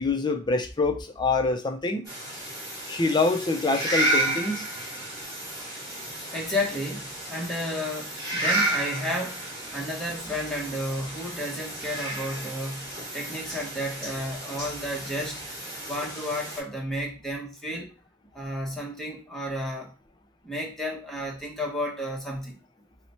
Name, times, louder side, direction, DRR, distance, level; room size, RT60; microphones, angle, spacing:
voice 1, 0.0-2.0 2.9-4.7, left 3 dB, 20° left, 0.4 m, -25 dB
sound 1, 2.0-16.6, right 1 dB, 20° right, 1.4 m, -32 dB
voice 2, 6.3-9.4 9.7-15.4 15.9-17.9 18.3-19.9 20.4-22.6, left 1 dB, ahead, 0.9 m, -32 dB
2.9 x 2.1 x 4.1 m
head